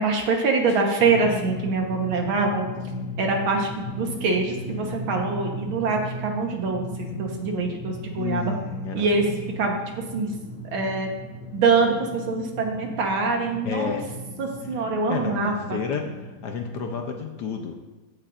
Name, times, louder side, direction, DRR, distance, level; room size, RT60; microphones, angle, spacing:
voice 1, 0.0-2.7 3.2-3.7 4.0-8.5 8.9-9.2 9.6-9.8 10.1-10.3 10.7-11.1 11.5-13.9 14.4-15.8, right 4 dB, 75° right, 2 dB, 2.1 m, -24 dB
Drum, 1.0-17.2, left 1 dB, 85° left, 2.0 m, -36 dB
voice 2, 8.1-9.4 13.6-14.0 14.6-17.8, left 6 dB, 65° left, 4 dB, 1.2 m, -31 dB
15.5 x 6.6 x 2.6 m, 1.2 s
omnidirectional pair, 2.3 m